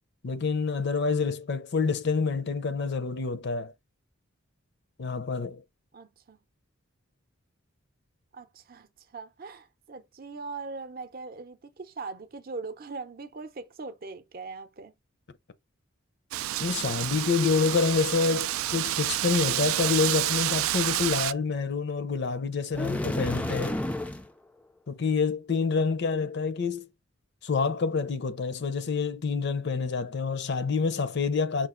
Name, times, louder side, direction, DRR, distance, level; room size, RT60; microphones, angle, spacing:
voice 1, 0.2-3.7 5.0-5.6 16.6-23.8 24.9-26.9 27.4-31.7, left 4 dB, 55° left, 0.6 m, -27 dB
voice 2, 5.9-6.4 8.3-8.9 9.1-14.9, right 4 dB, 45° right, 0.6 m, -40 dB
Wind, 16.3-21.3, right 14 dB, 80° right, 0.3 m, -29 dB
sound 1, 22.7-24.3, left 1 dB, 5° left, 0.3 m, -30 dB
5.9 x 2.4 x 3.7 m
head